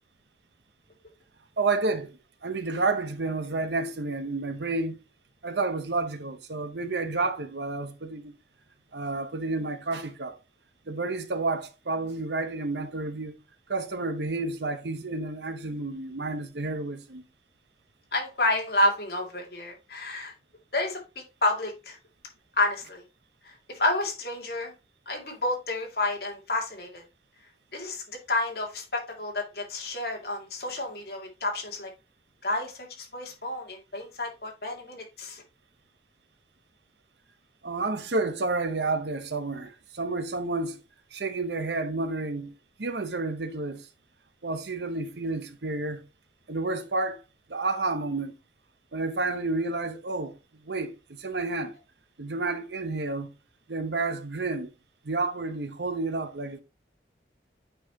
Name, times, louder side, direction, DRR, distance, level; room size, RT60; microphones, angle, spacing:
voice 1, 1.6-2.1 2.4-5.0 5.4-8.3 8.9-10.4 10.9-13.3 13.7-17.2 37.6-40.8 41.1-42.5 42.8-43.9 44.4-46.0 46.5-47.2 47.5-48.3 48.9-50.4 50.7-51.7 52.2-53.3 53.7-54.7 55.0-56.6, right 3 dB, 75° right, 0.9 m, -30 dB
voice 2, 18.1-20.3 20.7-21.0 21.4-22.0 22.6-23.0 23.5-24.7 25.1-27.0 27.7-31.9 32.4-35.4, left 2 dB, 60° left, 2.2 m, -30 dB
8.8 x 4.8 x 2.8 m
head